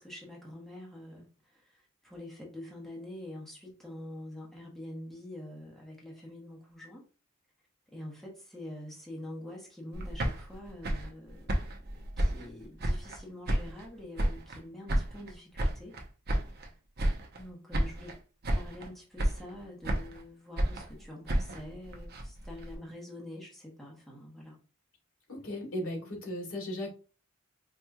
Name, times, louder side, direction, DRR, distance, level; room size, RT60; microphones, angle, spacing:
voice 1, 0.0-7.0 7.9-11.7 11.9-15.9 17.3-18.1 18.5-24.6 26.0-26.3, left 1 dB, ahead, -3 dB, 1.1 m, -46 dB
sound 1, 9.9-13.2 13.5-14.6 14.9-16.7 17.0-17.5 17.7-18.2 18.4-18.9 19.2-20.2 20.6-22.8, right 1 dB, 50° right, 0.8 m, -32 dB
voice 2, 25.3-26.9, left 1 dB, 80° left, -1 dB, 1.8 m, -36 dB
4.9 x 2.9 x 2.3 m, 0.34 s
head